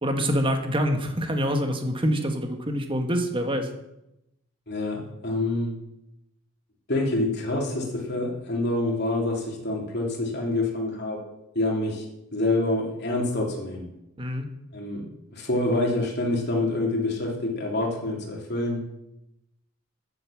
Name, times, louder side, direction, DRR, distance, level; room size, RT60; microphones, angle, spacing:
voice 1, 0.0-3.7 14.2-14.5, equal, 25° right, 5 dB, 1.5 m, -25 dB
voice 2, 4.7-5.8 6.9-11.2 11.5-12.0 12.3-13.9 14.7-18.9, left 2 dB, 55° left, -1 dB, 3.0 m, -27 dB
9.5 x 8.1 x 7.3 m, 0.87 s
head